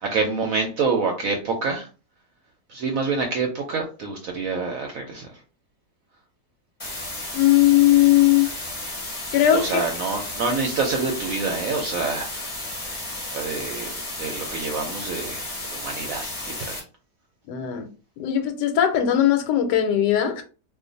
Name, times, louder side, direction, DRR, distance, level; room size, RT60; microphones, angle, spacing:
voice 1, 0.0-1.9 2.7-5.3 9.5-12.5 13.2-16.8, right 4 dB, 65° right, 0.9 m, -27 dB
sound 1, 6.8-16.8, left 1 dB, 25° left, 0.7 m, -33 dB
voice 2, 7.3-8.5 9.3-9.7 17.5-17.9 18.2-20.4, left 12 dB, 85° left, 1.2 m, -18 dB
2.5 x 2.4 x 3.8 m
omnidirectional pair, 1.8 m